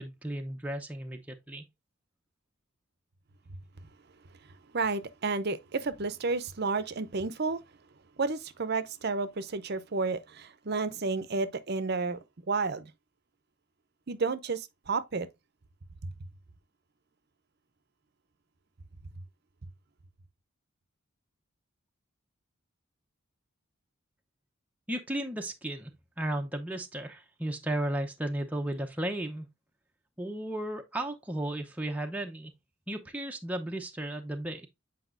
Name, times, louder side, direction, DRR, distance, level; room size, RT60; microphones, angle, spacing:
voice 1, 0.0-1.7 24.9-25.9 26.2-29.5 30.2-32.5 32.9-34.7, right 1 dB, 5° right, 0.6 m, -34 dB
voice 2, 4.7-7.6 8.2-12.2 12.5-12.9 14.1-15.3, right 4 dB, 50° right, 0.7 m, -31 dB
8.1 x 4.9 x 2.5 m
head